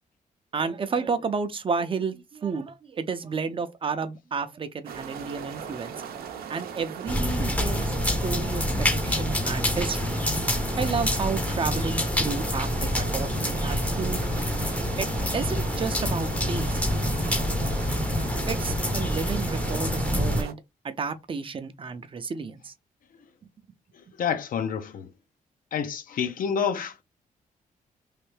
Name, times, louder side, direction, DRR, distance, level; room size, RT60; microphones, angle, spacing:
voice 1, 0.5-6.0 6.5-10.2 10.8-14.2 15.0-15.1 15.3-16.8 18.5-20.6 20.8-22.7, right 5 dB, 35° right, 0.5 m, -31 dB
sound 1, 4.8-20.5, right 7 dB, 85° right, 0.6 m, -38 dB
sound 2, 7.1-20.4, left 1 dB, 10° left, 0.6 m, -27 dB
voice 2, 24.2-25.1 25.7-27.0, left 7 dB, 65° left, 0.6 m, -28 dB
3.2 x 2.6 x 3.2 m
cardioid pair, 100°, 15 cm